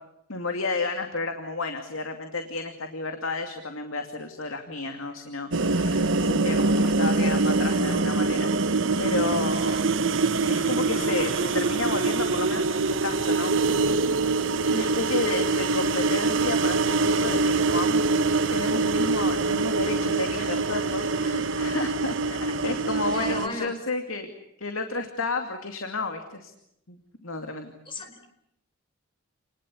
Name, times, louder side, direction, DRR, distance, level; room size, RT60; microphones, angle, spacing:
voice 1, 0.3-9.9 10.5-13.6 14.7-18.0 18.5-24.3 24.6-26.5 26.9-27.7, left 3 dB, 85° left, 6 dB, 2.5 m, -31 dB
sound 1, 5.5-23.5, right 3 dB, 65° right, 1.2 m, -24 dB
voice 2, 23.1-23.7 27.9-28.3, left 2 dB, 25° left, 6 dB, 5.0 m, -34 dB
30.0 x 20.5 x 8.5 m, 0.81 s
head